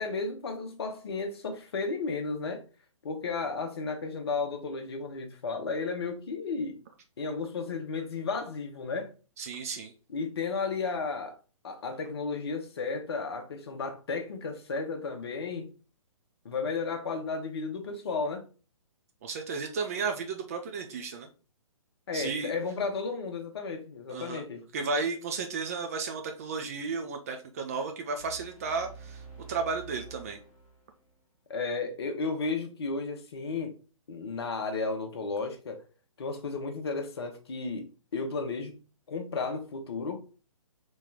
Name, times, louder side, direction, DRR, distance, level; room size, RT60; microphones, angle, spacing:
voice 1, 0.0-2.6 3.0-6.8 7.2-9.1 10.1-11.4 11.6-15.7 16.4-18.4 22.1-24.7 31.5-33.8 34.1-35.8 36.2-38.7 39.1-40.2, left 4 dB, 45° left, 0.9 m, -33 dB
voice 2, 9.4-9.9 19.2-21.3 22.1-22.5 24.1-24.4 24.7-29.2 29.5-30.4, right 4 dB, 25° right, 0.5 m, -33 dB
sound 1, 28.2-31.2, right 5 dB, 5° right, 1.3 m, -48 dB
4.2 x 3.1 x 3.6 m
figure-of-eight pair, 130°, 18 cm